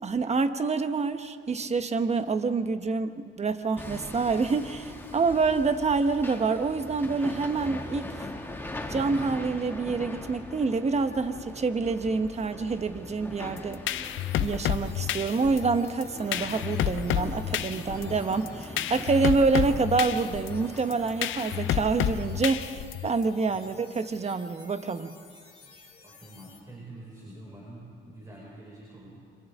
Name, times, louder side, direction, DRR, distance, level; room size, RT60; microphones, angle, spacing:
voice 1, 0.0-8.3 8.9-13.8 14.4-25.1, right 4 dB, 35° right, 9 dB, 1.2 m, -27 dB
Hammer, 3.8-22.4, left 1 dB, 10° left, 2.3 m, -41 dB
sound 1, 13.6-23.2, left 11 dB, 75° left, 0.7 m, -30 dB
sound 2, 14.0-26.6, left 4 dB, 30° left, 3.5 m, -53 dB
voice 2, 26.0-29.2, right 1 dB, 20° right, -5 dB, 5.8 m, -46 dB
29.0 x 25.5 x 3.7 m, 2.2 s
cardioid pair, 90°, 20 cm